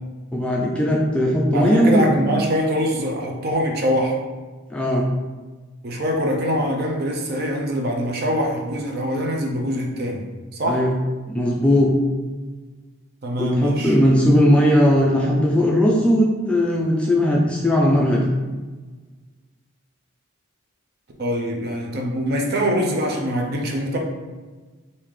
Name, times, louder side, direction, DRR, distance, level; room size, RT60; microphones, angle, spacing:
voice 1, 0.3-2.2 4.7-5.1 10.7-10.9 11.3-11.9 13.4-18.3, equal, 5° left, -3 dB, 0.3 m, -18 dB
voice 2, 1.5-4.2 5.8-10.3 10.6-10.8 13.2-14.0 21.2-24.0, equal, 45° right, 1 dB, 0.5 m, -23 dB
3.6 x 2.7 x 3.1 m, 1.3 s
head